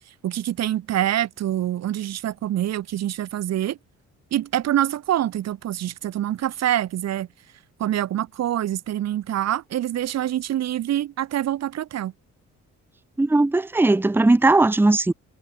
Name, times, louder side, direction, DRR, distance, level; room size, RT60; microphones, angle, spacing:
voice 1, 0.2-3.8 4.3-7.3 7.8-12.1, right 12 dB, 60° right, 0.8 m, -25 dB
voice 2, 13.2-15.1, right 2 dB, 5° right, 0.7 m, -18 dB
cardioid pair, 90°, 30 cm